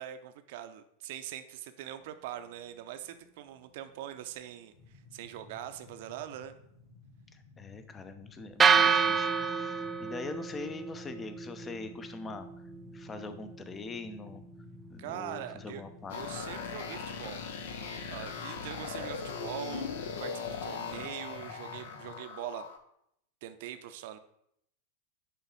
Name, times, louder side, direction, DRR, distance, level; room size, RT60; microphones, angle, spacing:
voice 1, 0.0-4.7 5.1-6.5 15.0-15.8 16.1-17.4 17.8-22.7 23.4-24.2, right 11 dB, 50° right, 10 dB, 0.7 m, -42 dB
sound 1, 4.7-22.1, left 4 dB, 85° left, 3.2 m, -54 dB
voice 2, 7.3-12.7 12.9-14.4 14.9-16.1, left 3 dB, 20° left, 10 dB, 0.8 m, -43 dB
sound 2, 8.6-16.7, right 6 dB, 15° right, 0.5 m, -31 dB
sound 3, 16.1-22.8, left 5 dB, 55° left, 0.9 m, -39 dB
10.0 x 4.0 x 5.4 m, 0.74 s
figure-of-eight pair, 90°, 0 cm